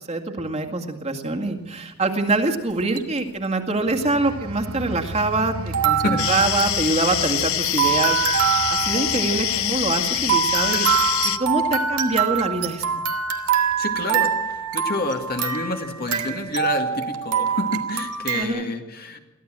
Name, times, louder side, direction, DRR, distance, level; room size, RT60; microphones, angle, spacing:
voice 1, 0.1-12.8 18.3-18.7, right 2 dB, 30° right, 3 dB, 2.1 m, -25 dB
sound 1, 2.7-3.2 4.0-4.1 5.7-18.4, right 7 dB, 90° right, 2.0 m, -25 dB
sound 2, 3.7-14.1 14.5-14.8, right 1 dB, 65° right, 1.3 m, -38 dB
sound 3, 6.2-11.4, left 12 dB, 70° left, 0.8 m, -25 dB
voice 2, 13.8-14.3 14.7-19.2, left 2 dB, 45° left, 4 dB, 2.1 m, -28 dB
23.5 x 15.5 x 7.6 m, 1.1 s
head